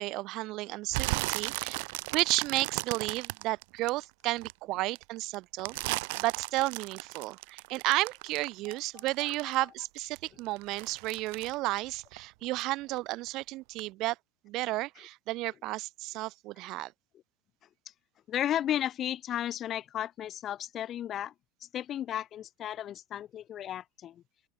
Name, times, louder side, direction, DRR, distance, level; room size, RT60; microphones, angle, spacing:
voice 1, 0.0-1.8 2.1-5.8 6.2-14.2 14.4-16.9, right 19 dB, 55° right, 3.9 m, -32 dB
sound 1, 0.9-4.5 4.9-9.7 10.0-12.7 13.0-13.4 13.8-13.9, right 27 dB, 70° right, 3.2 m, -36 dB
voice 2, 18.3-21.3 21.7-24.2, left 11 dB, 40° left, 2.9 m, -34 dB
open air
supercardioid pair, 115°, 0 cm